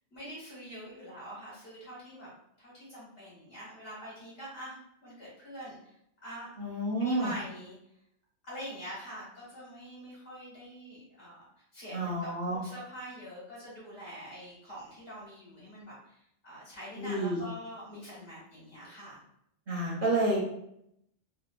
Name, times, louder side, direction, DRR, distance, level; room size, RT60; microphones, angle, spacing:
voice 1, 0.1-2.3 2.6-5.8 6.2-6.5 7.0-7.8 8.4-11.3 11.7-16.2 16.4-19.2, equal, 50° left, -7 dB, 1.3 m, -45 dB
voice 2, 6.6-7.3 11.9-12.6 17.0-17.4 19.7-20.4, right 1 dB, 55° right, -5 dB, 0.6 m, -29 dB
2.7 x 2.0 x 2.3 m, 0.76 s
omnidirectional pair, 1.3 m